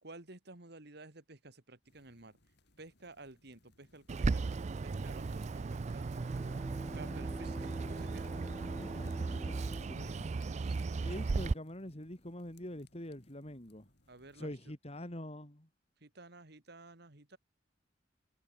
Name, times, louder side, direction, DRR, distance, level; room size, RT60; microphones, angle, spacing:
voice 1, 0.0-2.4 2.8-4.5 4.8-6.1 6.9-8.3 10.5-10.8 14.1-14.6 16.0-17.4, right 2 dB, 60° right, 2.5 m, -53 dB
sound 1, 1.8-14.5, left 2 dB, 60° left, 7.9 m, -70 dB
Bird, 4.1-11.5, right 4 dB, 40° right, 0.4 m, -36 dB
Bowed string instrument, 6.0-11.5, equal, 10° left, 2.6 m, -49 dB
voice 2, 8.8-10.4 11.0-13.9 14.3-15.7, left 1 dB, 35° left, 3.4 m, -45 dB
head